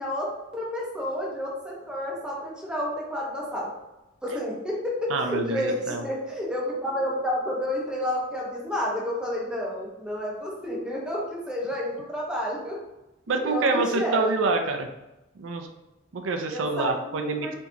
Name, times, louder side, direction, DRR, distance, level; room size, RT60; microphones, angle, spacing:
voice 1, 0.0-3.7 4.2-5.8 6.0-12.8 13.3-14.3 16.5-17.6, left 1 dB, 5° right, -4 dB, 0.9 m, -30 dB
voice 2, 5.1-6.0 13.3-14.9 15.4-15.7 16.1-17.6, right 3 dB, 85° right, 5 dB, 0.5 m, -26 dB
4.3 x 2.9 x 2.7 m, 0.95 s
head